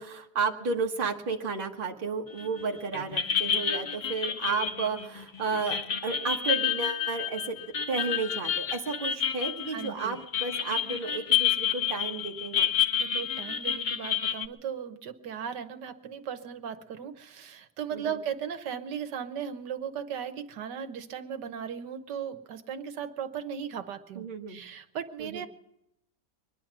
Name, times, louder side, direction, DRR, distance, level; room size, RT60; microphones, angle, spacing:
voice 1, 0.0-7.6 7.9-12.7 17.9-18.2 24.1-24.6 25.2-25.4, right 4 dB, 30° right, 1 dB, 1.5 m, -32 dB
sound 1, 2.4-2.7 2.9-14.5, left 8 dB, 55° left, 0.5 m, -29 dB
voice 2, 9.7-10.2 13.0-25.5, right 8 dB, 80° right, 9 dB, 1.6 m, -37 dB
23.0 x 10.5 x 6.0 m, 0.81 s
omnidirectional pair, 1.8 m